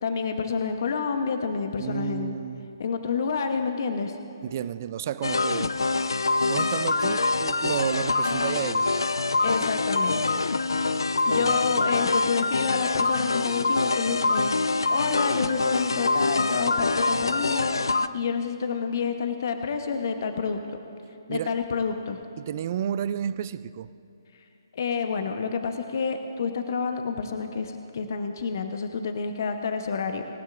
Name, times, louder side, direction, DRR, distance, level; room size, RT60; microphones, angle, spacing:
voice 1, 0.0-2.4 2.8-4.2 9.4-10.2 11.3-20.6 21.3-22.2 24.7-30.2, left 5 dB, 50° left, 6 dB, 1.0 m, -29 dB
voice 2, 1.8-2.7 4.4-5.8 6.5-9.1 11.3-11.8 21.3-21.5 22.4-23.9, right 10 dB, 40° right, 16 dB, 0.5 m, -32 dB
sound 1, 5.2-18.1, left 3 dB, 75° left, 0.5 m, -25 dB
25.5 x 16.0 x 2.6 m, 2.7 s
figure-of-eight pair, 140°, 2 cm